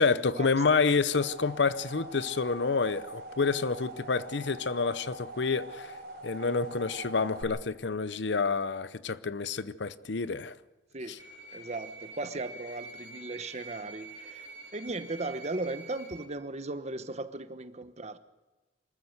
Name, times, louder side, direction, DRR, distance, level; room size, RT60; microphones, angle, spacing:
voice 1, 0.0-6.0 6.2-10.5 11.1-11.2, left 4 dB, 70° left, 0.7 m, -28 dB
sound 1, 0.7-7.4, right 1 dB, 60° right, 4.4 m, -44 dB
sound 2, 11.2-16.2, right 3 dB, 85° right, 2.3 m, -47 dB
voice 2, 11.5-18.2, right 2 dB, 40° right, 1.1 m, -37 dB
24.5 x 14.0 x 8.0 m
head